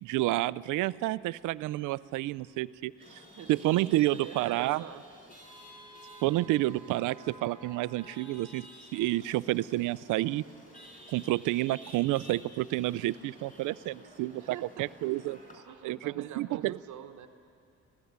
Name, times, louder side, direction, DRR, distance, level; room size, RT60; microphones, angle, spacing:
voice 1, 0.0-3.2 3.5-4.8 6.2-10.4 11.1-15.4 15.8-16.7, right 17 dB, 90° right, 18 dB, 0.5 m, -30 dB
Chatter / Vehicle horn car horn honking / Traffic noise roadway noise, 3.0-15.6, equal, 25° left, 5.4 m, -52 dB
voice 2, 3.3-5.0 14.4-14.9 15.6-17.3, right 10 dB, 70° right, 7 dB, 1.1 m, -45 dB
25.5 x 16.5 x 9.5 m, 2.5 s
cardioid pair, 90°, 30 cm